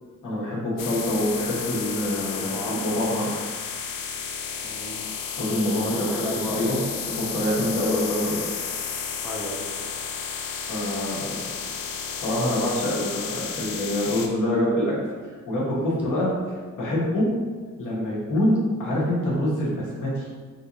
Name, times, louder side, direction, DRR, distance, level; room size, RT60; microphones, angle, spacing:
voice 1, 0.2-3.4 5.4-6.2 6.5-6.8 7.1-8.4 10.7-11.4 12.2-14.9 15.5-17.3 17.8-20.3, left 1 dB, 70° left, -6 dB, 1.2 m, -25 dB
sound 1, 0.8-14.3, left 6 dB, 85° left, 0.5 m, -32 dB
voice 2, 2.3-3.0 4.6-5.0 5.8-6.9 9.2-9.7 12.6-12.7 15.8-15.9, equal, 5° right, -4 dB, 0.4 m, -34 dB
3.5 x 2.9 x 2.6 m, 1.5 s
wide cardioid pair, 130°, 33 cm